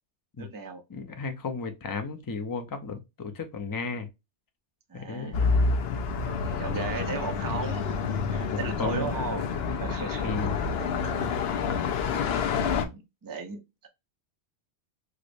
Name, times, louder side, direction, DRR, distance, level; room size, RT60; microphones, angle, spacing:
voice 1, 0.4-0.8 4.9-5.8 6.2-8.0 8.3-9.4 9.8-10.4 10.8-10.9 11.2-11.5 12.3-13.9, right 5 dB, 30° right, 0.4 m, -37 dB
voice 2, 0.9-4.1 4.9-5.4 8.5-9.1 10.2-10.6, left 4 dB, 30° left, 0.4 m, -34 dB
sound 1, 5.3-12.8, left 5 dB, 70° left, 0.8 m, -28 dB
4.7 x 2.0 x 2.6 m
omnidirectional pair, 1.1 m